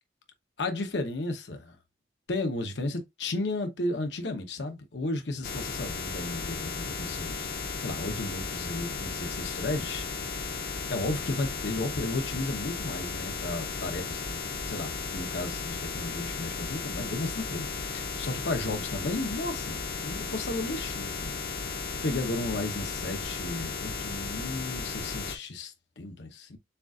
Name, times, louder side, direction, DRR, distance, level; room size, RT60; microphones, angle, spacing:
voice 1, 0.6-1.8 2.3-10.6 10.9-21.3 22.0-26.6, left 2 dB, 85° left, 0.9 m, -34 dB
sound 1, 5.4-25.4, left 5 dB, 55° left, 0.6 m, -35 dB
6.8 x 2.4 x 2.4 m
head